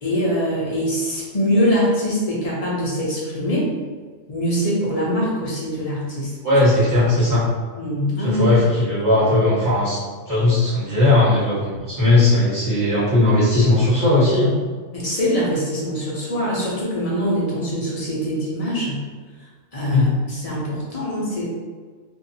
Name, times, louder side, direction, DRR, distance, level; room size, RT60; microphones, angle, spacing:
voice 1, 0.0-3.7 4.3-6.4 7.8-8.5 14.9-19.0 19.7-21.5, equal, 40° left, -6 dB, 0.6 m, -23 dB
voice 2, 6.4-7.4 8.2-10.0 10.3-14.6 19.9-20.1, left 2 dB, 15° right, -10 dB, 1.1 m, -17 dB
2.6 x 2.4 x 2.7 m, 1.5 s
omnidirectional pair, 1.4 m